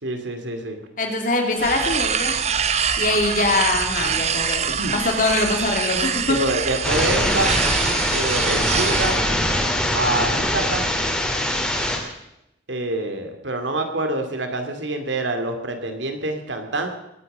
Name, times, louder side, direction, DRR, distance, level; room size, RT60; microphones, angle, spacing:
voice 1, 0.0-0.8 4.0-4.3 4.8-5.0 6.3-7.6 8.1-9.2 9.9-10.9 12.7-16.9, right 2 dB, 85° right, 5 dB, 2.5 m, -26 dB
voice 2, 1.0-2.3 3.0-4.7 4.9-6.4, left 2 dB, 45° left, 3 dB, 2.7 m, -22 dB
sound 1, 1.6-9.2, right 7 dB, 35° right, 0.8 m, -24 dB
sound 2, 6.8-12.0, left 1 dB, 5° left, 2.4 m, -22 dB
21.0 x 9.2 x 6.7 m, 0.86 s
head